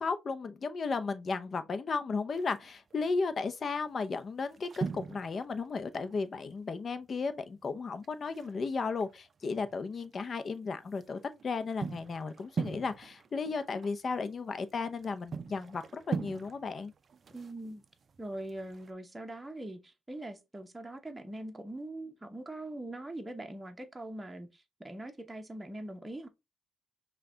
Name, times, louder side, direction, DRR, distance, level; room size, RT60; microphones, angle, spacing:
voice 1, 0.0-16.9, left 4 dB, 45° left, 0.6 m, -34 dB
sound 1, 2.3-2.9 3.6-3.8 4.1-6.8 7.1-7.2 7.5-7.6 8.0-10.1 10.6-18.9, right 5 dB, 45° right, 0.4 m, -42 dB
voice 2, 17.3-17.8 18.2-26.3, right 1 dB, 15° right, 0.8 m, -42 dB
5.7 x 2.3 x 3.8 m
cardioid pair, 90°, 0 cm